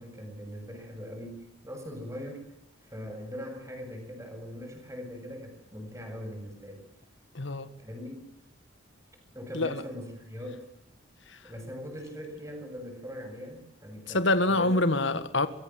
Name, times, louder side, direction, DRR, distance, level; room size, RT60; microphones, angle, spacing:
voice 1, 0.0-2.5 2.8-6.8 7.8-8.3 9.3-10.7 11.4-14.2 14.5-14.7, equal, 15° right, 7.6 m, -41 dB
voice 2, 7.3-7.7 9.5-9.8 11.3-11.4 14.1-15.5, left 2 dB, 70° left, 1.8 m, -26 dB
24.0 x 24.0 x 7.7 m
head